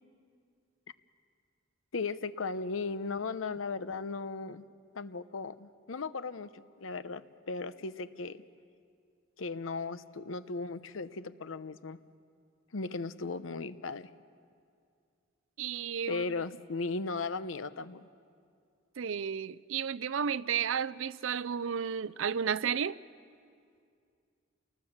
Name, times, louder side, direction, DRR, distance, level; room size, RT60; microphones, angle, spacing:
voice 1, 1.9-4.6 4.9-8.4 9.4-12.0 12.7-14.1 16.1-18.1, left 4 dB, 85° left, 0.8 m, -37 dB
voice 2, 15.6-16.2 19.0-23.0, right 7 dB, 85° right, 0.5 m, -32 dB
29.5 x 19.5 x 7.2 m
head